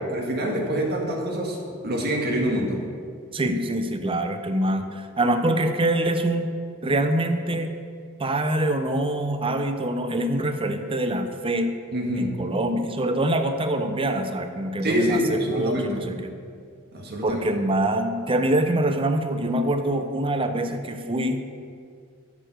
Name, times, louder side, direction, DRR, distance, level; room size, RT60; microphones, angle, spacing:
voice 1, 0.1-1.6 1.8-2.9 11.9-12.4 14.8-16.0 16.9-17.4, equal, 50° right, 0 dB, 1.6 m, -25 dB
voice 2, 3.3-6.5 6.8-7.7 8.2-11.7 12.2-16.3 17.2-21.4, right 1 dB, 25° right, 8 dB, 0.6 m, -25 dB
12.5 x 6.6 x 4.6 m, 2.2 s
head